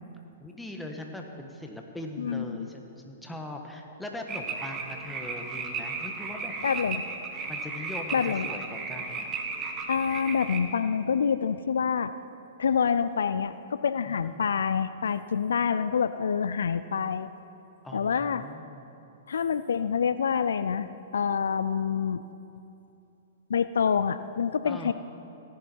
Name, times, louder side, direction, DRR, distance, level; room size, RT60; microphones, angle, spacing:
voice 1, 0.4-6.7 7.5-9.3 14.1-14.5 17.8-18.8 24.6-24.9, left 1 dB, 5° left, 2 dB, 1.5 m, -41 dB
voice 2, 2.2-2.7 6.6-7.0 8.1-8.5 9.9-12.1 12.6-17.3 17.9-18.4 19.3-20.9 21.1-22.2 23.5-24.9, left 6 dB, 80° left, 13 dB, 0.4 m, -27 dB
sound 1, 4.3-10.6, right 4 dB, 25° right, 1.5 m, -35 dB
16.5 x 11.0 x 4.7 m, 2.8 s
hypercardioid pair, 125°, 0 cm